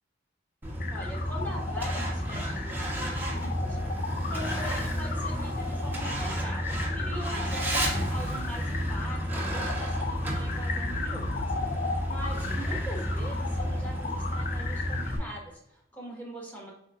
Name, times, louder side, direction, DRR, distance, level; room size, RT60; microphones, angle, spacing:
Truck, 0.6-15.2, equal, 10° right, 1.1 m, -31 dB
sound 1, 0.8-15.2, left 5 dB, 45° left, 0.5 m, -37 dB
voice 1, 0.9-3.8 4.3-11.8 12.1-16.7, equal, 10° left, -3 dB, 1.4 m, -42 dB
5.2 x 4.0 x 2.5 m, 0.79 s
head